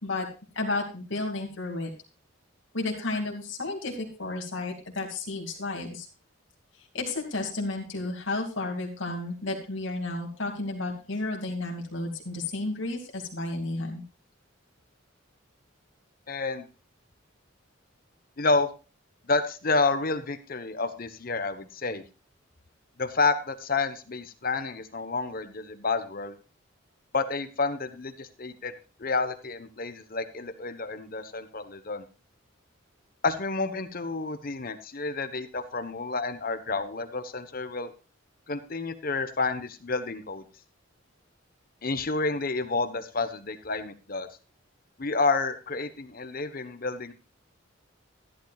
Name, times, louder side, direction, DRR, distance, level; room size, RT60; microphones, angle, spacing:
voice 1, 0.5-1.9 2.7-6.1 6.9-14.0, left 2 dB, 70° left, 1 dB, 2.4 m, -32 dB
voice 2, 16.3-16.7 18.4-18.7 19.3-22.0 23.0-26.4 27.1-28.7 29.0-32.0 33.2-37.9 38.5-40.4 41.8-44.3 45.0-47.1, left 3 dB, 45° left, 10 dB, 1.1 m, -29 dB
13.5 x 12.0 x 2.4 m, 0.33 s
head